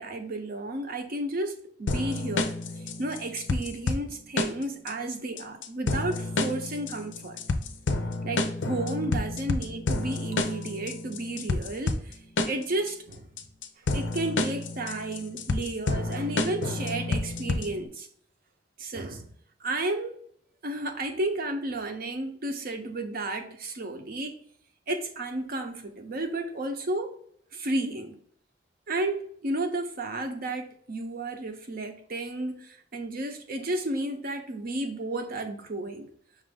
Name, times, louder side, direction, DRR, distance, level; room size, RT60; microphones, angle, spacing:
voice 1, 0.0-7.4 8.2-12.2 12.4-13.3 13.8-18.1 18.8-19.3 19.6-20.2 20.6-24.4 24.9-27.1 27.5-28.2 28.9-36.1, right 2 dB, 55° right, 0.7 m, -32 dB
sound 1, 1.9-17.9, left 2 dB, 85° left, 0.5 m, -30 dB
5.9 x 2.5 x 3.5 m
head